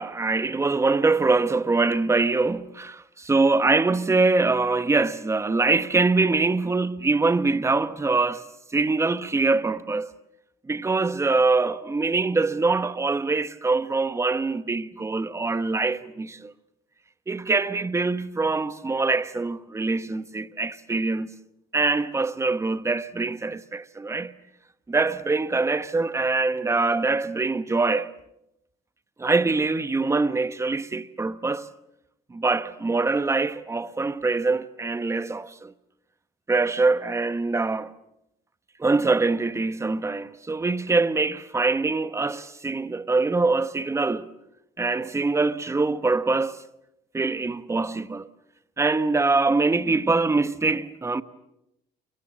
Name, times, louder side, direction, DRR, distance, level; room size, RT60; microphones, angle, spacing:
voice 1, 0.0-8.4 8.7-10.1 10.7-16.5 17.3-21.3 21.7-24.3 24.9-28.1 29.2-31.7 32.3-35.7 36.5-37.9 38.8-44.3 44.8-46.6 47.1-48.3 48.8-51.2, right 3 dB, 15° right, 1.1 m, -24 dB
29.0 x 24.0 x 7.4 m
cardioid pair, 110°, 17 cm